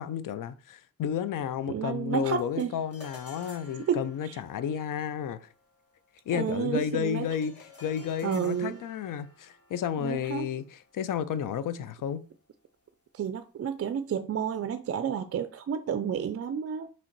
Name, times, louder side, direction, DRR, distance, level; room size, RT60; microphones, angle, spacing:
voice 1, 0.0-5.5 6.3-12.2, left 8 dB, 60° left, 0.5 m, -32 dB
voice 2, 1.7-2.7 3.9-4.4 6.3-7.3 8.2-8.8 10.0-10.5 13.1-16.9, right 8 dB, 40° right, 0.4 m, -31 dB
sound 1, 2.4-11.9, left 3 dB, 40° left, 1.4 m, -54 dB
3.7 x 3.1 x 4.5 m
supercardioid pair, 45°, 37 cm